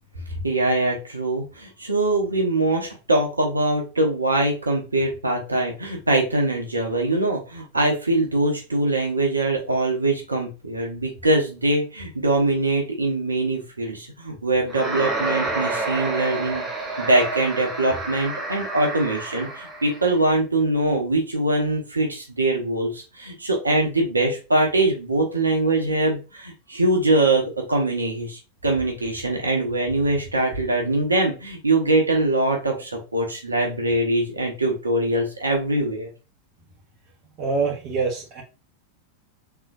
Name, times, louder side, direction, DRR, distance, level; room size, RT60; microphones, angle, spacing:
voice 1, 0.4-16.6 17.0-36.1, right 2 dB, 80° right, 0.9 m, -23 dB
sound 1, 14.7-20.1, right 2 dB, 10° right, 0.8 m, -29 dB
voice 2, 37.4-38.4, right 4 dB, 35° right, 0.9 m, -25 dB
3.7 x 3.0 x 2.4 m
figure-of-eight pair, 90°, 0 cm